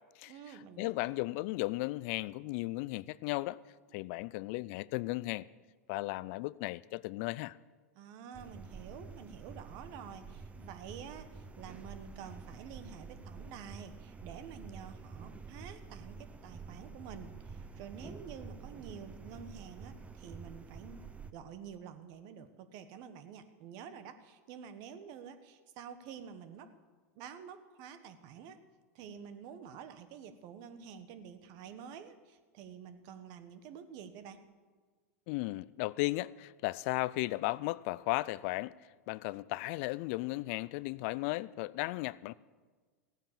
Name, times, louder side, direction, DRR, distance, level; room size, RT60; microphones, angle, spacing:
voice 1, 0.3-1.1 7.9-21.0 21.3-26.7 27.1-28.6 28.9-34.4, right 7 dB, 55° right, 1.3 m, -49 dB
voice 2, 0.8-3.6 3.9-5.5 5.9-7.6 35.3-38.7 39.1-42.3, left 20 dB, 55° left, 0.4 m, -35 dB
sound 1, 8.3-21.3, right 4 dB, 15° right, 0.8 m, -49 dB
15.5 x 9.2 x 7.1 m
hypercardioid pair, 105°, 9 cm